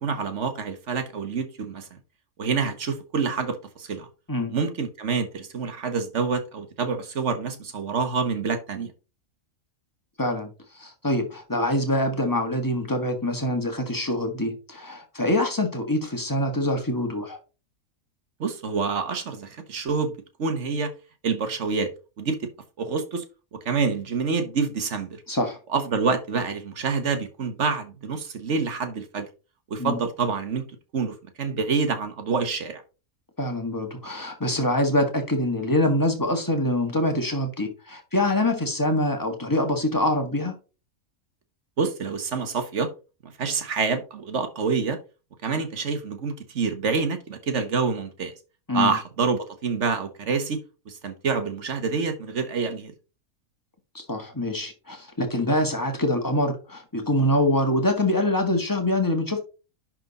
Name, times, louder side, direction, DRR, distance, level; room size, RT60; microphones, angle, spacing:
voice 1, 0.0-1.9 2.4-4.1 4.5-8.9 18.4-20.9 21.2-21.9 22.2-22.5 22.8-23.2 23.5-25.2 25.7-29.3 29.7-30.6 30.9-32.8 41.8-42.9 43.2-45.0 45.4-48.3 48.7-50.6 50.9-52.9, right 5 dB, 55° right, 1.4 m, -27 dB
voice 2, 10.2-10.5 10.7-17.4 25.3-25.6 29.8-29.9 33.4-40.5 48.7-48.9 53.9-59.4, left 1 dB, 15° left, 1.6 m, -25 dB
10.5 x 3.9 x 4.1 m
omnidirectional pair, 1.5 m